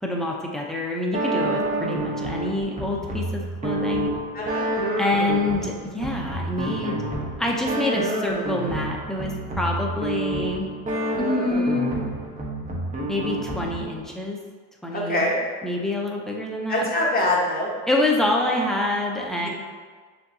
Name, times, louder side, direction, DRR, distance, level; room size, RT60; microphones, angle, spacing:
voice 1, 0.0-4.1 5.0-7.0 7.4-10.7 11.2-11.9 13.1-14.4 14.8-15.2 15.6-16.9 17.9-19.5, left 2 dB, ahead, -1 dB, 0.6 m, -26 dB
sound 1, 1.1-14.0, right 1 dB, 20° right, 0.9 m, -28 dB
voice 2, 4.3-4.7 14.9-15.3 16.7-17.7 19.4-19.5, left 1 dB, 20° left, -4 dB, 1.2 m, -24 dB
6.4 x 2.8 x 2.7 m, 1.5 s
supercardioid pair, 100°, 40 cm